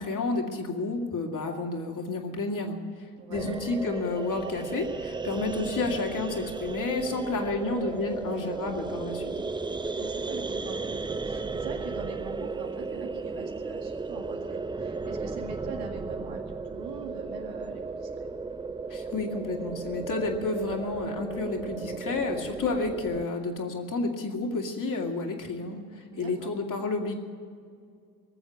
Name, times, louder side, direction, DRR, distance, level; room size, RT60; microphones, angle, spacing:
voice 1, 0.0-2.8 3.3-9.3 18.9-27.1, left 3 dB, 45° left, 2 dB, 2.5 m, -31 dB
voice 2, 3.2-3.5 9.7-18.3 26.1-26.5, right 5 dB, 85° right, 1 dB, 2.1 m, -42 dB
sound 1, 3.3-23.3, right 4 dB, 10° right, 0.5 m, -35 dB
19.0 x 7.2 x 9.8 m, 2.2 s
hypercardioid pair, 55°, 44 cm